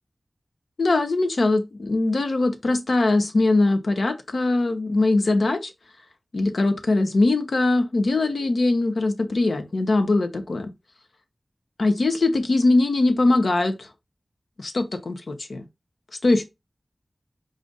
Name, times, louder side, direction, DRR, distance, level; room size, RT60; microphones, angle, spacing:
voice 1, 0.8-5.7 6.3-10.7 11.8-13.9 14.6-15.6 16.2-16.4, left 2 dB, 75° left, 0.7 m, -21 dB
4.9 x 2.5 x 3.9 m
wide cardioid pair, 85°, 0 cm